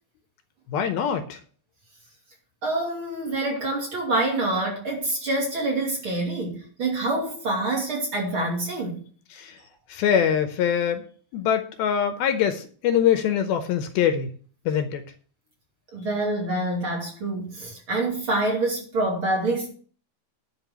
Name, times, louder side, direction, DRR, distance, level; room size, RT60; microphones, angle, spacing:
voice 1, 0.7-1.4 9.3-9.5 9.9-11.0 11.3-14.3 14.7-15.0, left 8 dB, 75° left, 2.6 m, -23 dB
voice 2, 2.6-9.0 15.9-19.7, right 2 dB, 35° right, 3.1 m, -26 dB
11.0 x 5.4 x 7.0 m
omnidirectional pair, 4.6 m